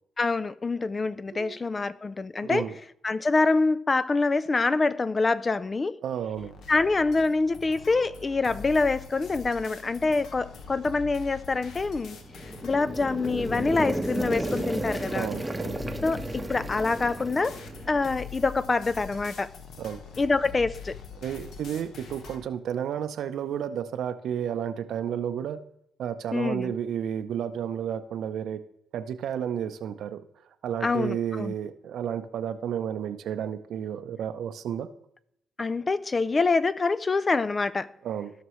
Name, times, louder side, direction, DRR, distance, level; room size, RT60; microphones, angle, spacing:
voice 1, 0.2-2.7 3.0-6.0 6.7-12.2 12.6-15.3 16.0-17.6 17.9-19.5 20.2-21.0 26.3-26.7 30.8-31.5 35.6-37.9, left 3 dB, 30° left, 0.3 m, -25 dB
voice 2, 1.3-1.9 2.4-2.7 6.0-6.5 15.1-15.8 19.8-20.0 21.2-25.6 26.0-28.6 28.9-30.2 30.6-34.9 38.0-38.3, right 9 dB, 70° right, 0.6 m, -32 dB
sound 1, 6.3-22.5, left 5 dB, 70° left, 1.0 m, -43 dB
sound 2, 12.2-18.2, right 1 dB, 10° right, 0.8 m, -33 dB
16.0 x 6.0 x 3.1 m
cardioid pair, 90°, 0 cm